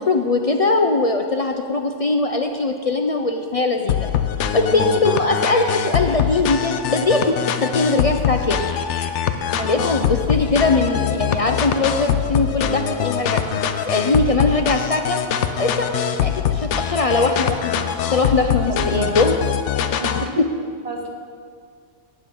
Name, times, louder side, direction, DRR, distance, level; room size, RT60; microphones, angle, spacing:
voice 1, 0.0-4.1 4.5-7.3 7.6-8.7 9.6-19.4 20.4-20.5, left 3 dB, 50° left, 4 dB, 0.4 m, -21 dB
sound 1, 3.9-20.3, left 9 dB, 80° left, 0.9 m, -23 dB
voice 2, 18.7-19.2 20.0-20.5 20.8-21.1, right 2 dB, 35° right, 1 dB, 1.2 m, -29 dB
17.5 x 7.2 x 3.8 m, 2.1 s
omnidirectional pair, 1.2 m